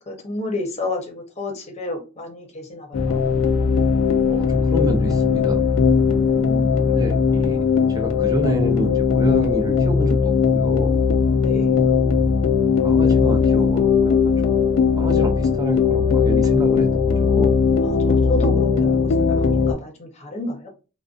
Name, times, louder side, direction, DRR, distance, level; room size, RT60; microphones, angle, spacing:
voice 1, 0.0-3.4 6.0-6.9 11.4-11.7 17.8-20.7, left 2 dB, 35° left, 0.7 m, -31 dB
sound 1, 2.9-19.7, left 5 dB, 70° left, 0.3 m, -18 dB
voice 2, 4.3-5.7 6.9-7.6 7.9-11.0 11.8-12.2 12.8-14.7 15.0-17.5, right 1 dB, 20° right, 0.4 m, -28 dB
2.5 x 2.1 x 2.4 m
head